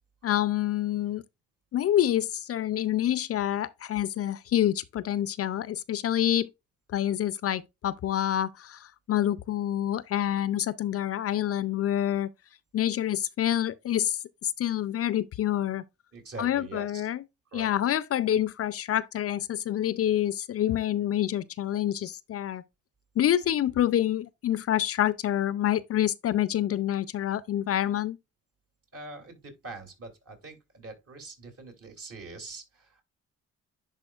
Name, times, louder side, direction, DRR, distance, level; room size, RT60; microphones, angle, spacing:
voice 1, 0.2-1.2 1.7-6.5 6.9-12.3 12.7-15.8 16.4-17.2 17.5-22.6 23.2-28.2, left 11 dB, 50° left, 0.5 m, -27 dB
voice 2, 16.1-17.1 17.5-17.7 28.9-33.0, right 2 dB, 50° right, 2.9 m, -43 dB
10.5 x 4.3 x 2.4 m
cardioid pair, 90°, 30 cm